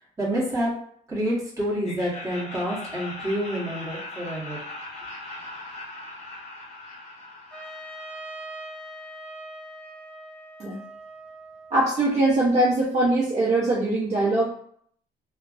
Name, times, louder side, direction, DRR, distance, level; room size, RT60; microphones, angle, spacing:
voice 1, 0.2-0.7 1.1-4.6, equal, 20° right, -6 dB, 1.4 m, -28 dB
Laughter, 1.8-8.8, left 2 dB, 40° left, 0.8 m, -40 dB
Trumpet, 7.5-12.3, right 1 dB, 5° left, 1.1 m, -42 dB
voice 2, 11.7-14.5, right 2 dB, 45° right, -7 dB, 0.8 m, -22 dB
3.2 x 2.2 x 2.5 m, 0.63 s
cardioid pair, 110°, 17 cm